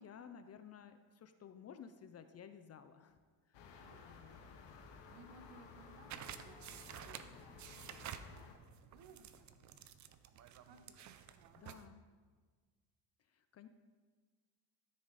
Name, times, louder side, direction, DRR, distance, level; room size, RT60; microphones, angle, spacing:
voice 1, 0.0-3.2 3.5-3.6 4.0-4.4 11.5-12.1 13.3-13.7, left 7 dB, 35° left, 9 dB, 0.5 m, -55 dB
sound 1, 3.5-8.5, left 5 dB, 65° left, 1.4 m, -56 dB
voice 2, 3.5-7.3 7.7-9.9 10.6-11.9, right 4 dB, 55° right, 7 dB, 1.1 m, -63 dB
sound 2, 4.8-9.9, right 1 dB, 85° right, 3.0 m, -71 dB
sound 3, 6.1-11.9, right 9 dB, 40° right, 0.5 m, -51 dB
13.5 x 6.6 x 4.2 m, 1.5 s
cardioid pair, 135°, 46 cm